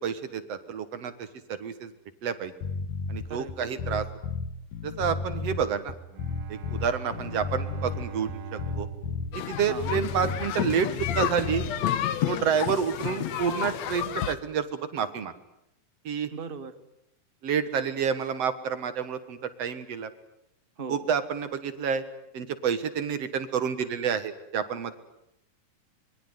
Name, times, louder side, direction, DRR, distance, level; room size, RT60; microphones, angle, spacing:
voice 1, 0.0-1.9 2.2-2.5 3.1-4.1 4.8-5.9 6.5-8.9 9.4-11.6 12.3-15.3 16.0-16.3 17.4-20.1 20.9-22.0 22.3-24.9, right 7 dB, 55° right, 11 dB, 2.3 m, -29 dB
sound 1, 2.6-12.2, left 5 dB, 85° left, 3.0 m, -33 dB
voice 2, 3.2-3.9 9.7-10.0 16.3-16.7 20.8-21.1, right 5 dB, 35° right, 9 dB, 0.8 m, -39 dB
Bowed string instrument, 6.1-10.5, right 6 dB, 90° right, 3.4 m, -42 dB
sound 2, 9.3-14.3, left 11 dB, 65° left, 2.2 m, -31 dB
25.5 x 23.0 x 9.5 m, 0.82 s
omnidirectional pair, 3.9 m